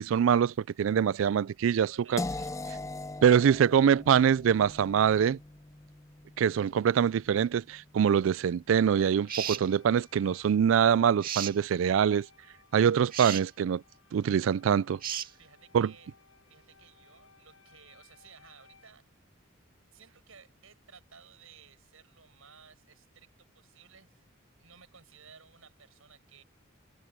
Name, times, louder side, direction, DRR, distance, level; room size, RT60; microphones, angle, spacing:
voice 1, 0.0-2.2 3.2-5.4 6.4-12.3 12.7-13.8 14.1-15.0 15.7-15.9, right 8 dB, 70° right, 0.3 m, -24 dB
voice 2, 1.8-2.6 15.4-16.1 16.5-19.0 19.9-24.2 24.6-26.4, right 6 dB, 90° right, 6.8 m, -56 dB
sound 1, 2.2-8.1, left 2 dB, 15° left, 0.4 m, -41 dB
sound 2, 8.7-18.9, left 5 dB, 85° left, 6.8 m, -62 dB
sound 3, 9.3-9.7 11.2-11.6 13.1-13.4 15.0-15.3, right 9 dB, 45° right, 1.9 m, -34 dB
head